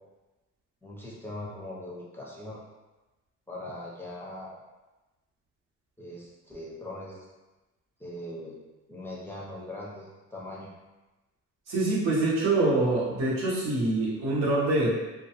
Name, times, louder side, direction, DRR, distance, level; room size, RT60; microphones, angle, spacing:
voice 1, 0.8-2.6 3.5-4.6 6.0-7.3 8.0-8.6 8.9-10.7, left 1 dB, 10° left, -5 dB, 0.5 m, -40 dB
voice 2, 11.7-14.9, right 2 dB, 85° right, -6 dB, 0.9 m, -25 dB
2.2 x 2.2 x 2.8 m, 1.1 s
cardioid pair, 90°, 30 cm